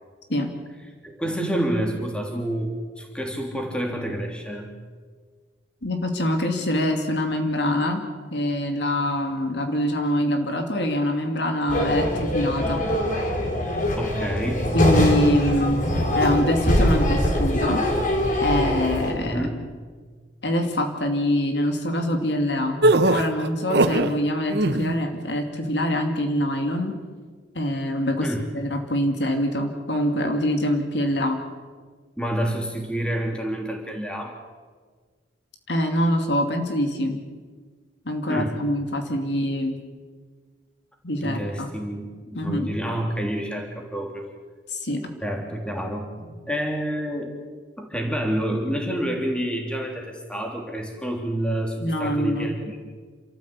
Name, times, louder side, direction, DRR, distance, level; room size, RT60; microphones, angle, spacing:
voice 1, 1.0-4.7 14.0-14.7 16.8-16.9 19.2-19.6 28.2-28.5 32.2-34.4 38.3-38.6 41.2-44.3 45.2-47.4 47.8-52.8, right 1 dB, 5° left, 1 dB, 3.2 m, -28 dB
voice 2, 5.8-8.0 8.3-12.9 14.7-15.9 16.1-17.8 18.4-19.5 20.4-22.8 23.1-26.9 27.5-28.3 28.5-31.4 35.7-37.2 38.0-39.8 41.0-41.7 42.3-42.7 44.7-45.1 51.8-52.5, left 1 dB, 65° left, 4 dB, 2.5 m, -24 dB
sound 1, 11.7-19.1, left 1 dB, 45° left, 4.0 m, -23 dB
sound 2, 22.8-24.1 24.5-25.0, right 2 dB, 65° right, 1.2 m, -19 dB
28.5 x 14.0 x 8.5 m, 1.5 s
head